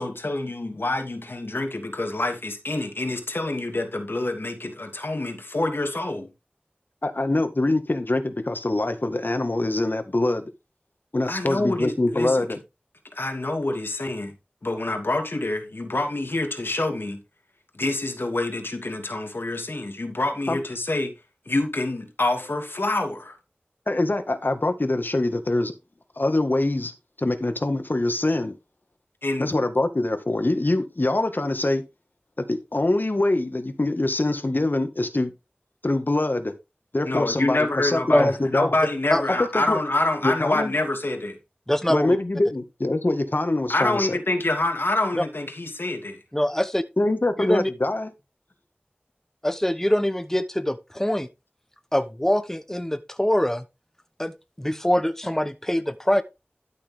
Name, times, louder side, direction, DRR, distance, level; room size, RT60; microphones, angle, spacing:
voice 1, 0.0-6.3 11.3-12.5 13.1-14.3 14.6-17.2 17.7-21.1 21.5-23.4 29.2-29.5 37.1-41.4 43.7-46.2, left 2 dB, 80° left, 2.6 m, -26 dB
voice 2, 7.0-10.5 11.1-12.6 20.5-20.6 23.9-25.7 26.2-26.9 27.2-28.6 29.4-31.8 32.5-35.3 35.8-36.5 36.9-38.7 39.5-39.8 40.2-40.7 41.9-44.1 47.0-48.1, left 2 dB, 60° left, 1.8 m, -24 dB
voice 3, 41.7-42.2 45.2-45.3 46.3-46.8 47.4-47.7 49.4-51.3 51.9-53.6 54.2-54.3 54.6-56.2, left 1 dB, 10° left, 0.9 m, -23 dB
12.5 x 6.5 x 3.6 m
wide cardioid pair, 45°, 4 cm